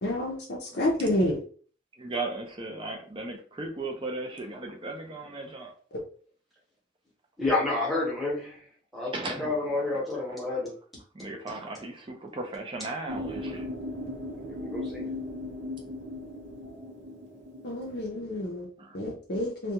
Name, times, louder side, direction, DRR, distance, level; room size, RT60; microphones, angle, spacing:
voice 1, 0.0-1.4 17.6-18.7 18.9-19.7, left 1 dB, 55° left, -3 dB, 0.5 m, -29 dB
voice 2, 2.0-5.7 9.1-9.5 11.1-13.8 18.8-19.0, right 2 dB, 25° right, 2 dB, 0.4 m, -36 dB
voice 3, 7.4-10.8 14.3-15.1 16.6-16.9, left 2 dB, ahead, -5 dB, 0.9 m, -30 dB
sound 1, 13.1-18.0, left 1 dB, 60° right, 0.7 m, -37 dB
2.3 x 2.2 x 2.8 m, 0.43 s
head